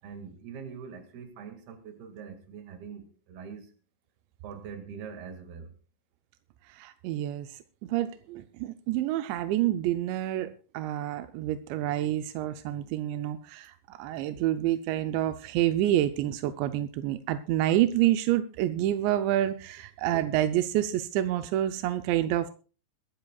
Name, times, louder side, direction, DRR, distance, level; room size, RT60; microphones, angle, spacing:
voice 1, 0.0-3.7 4.4-5.7, right 6 dB, 65° right, 3.8 m, -43 dB
voice 2, 6.7-22.5, right 13 dB, 90° right, 3.0 m, -28 dB
22.5 x 13.0 x 2.4 m
omnidirectional pair, 5.0 m